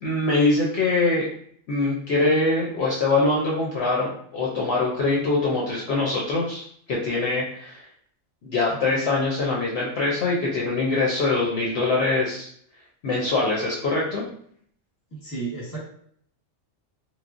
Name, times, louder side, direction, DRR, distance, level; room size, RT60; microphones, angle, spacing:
voice 1, 0.0-1.3 1.7-7.9 8.4-12.5 13.0-14.2, left 3 dB, 65° left, -4 dB, 0.7 m, -23 dB
voice 2, 15.1-15.8, right 4 dB, 20° left, -5 dB, 0.8 m, -32 dB
3.1 x 2.0 x 2.4 m, 0.63 s
omnidirectional pair, 1.3 m